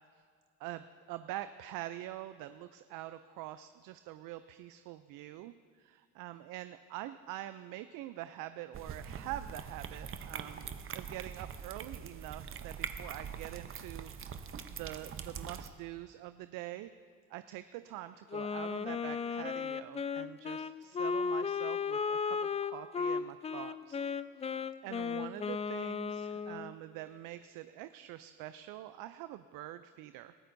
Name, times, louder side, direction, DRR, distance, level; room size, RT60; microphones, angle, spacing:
voice 1, 0.6-10.7 10.9-16.9 17.3-24.0 24.4-30.4, right 14 dB, 70° right, 12 dB, 0.5 m, -45 dB
sound 1, 8.7-15.7, right 7 dB, 40° right, 0.8 m, -43 dB
Wind instrument woodwind instrument, 18.3-26.7, left 5 dB, 20° left, 0.3 m, -35 dB
19.5 x 14.0 x 2.6 m, 2.1 s
supercardioid pair, 85°, 34 cm